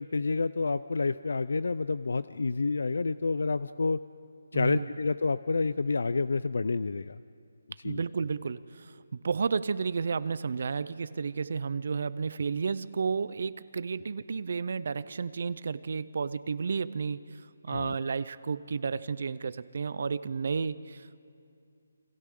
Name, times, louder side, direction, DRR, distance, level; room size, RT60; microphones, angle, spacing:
voice 1, 0.0-4.0 4.5-7.2 7.8-8.0 17.7-18.0, left 3 dB, 65° left, 15 dB, 0.4 m, -29 dB
voice 2, 4.5-4.9 7.8-21.2, right 5 dB, 45° right, 16 dB, 0.5 m, -32 dB
29.5 x 25.5 x 3.8 m, 2.4 s
hypercardioid pair, 175°, 0 cm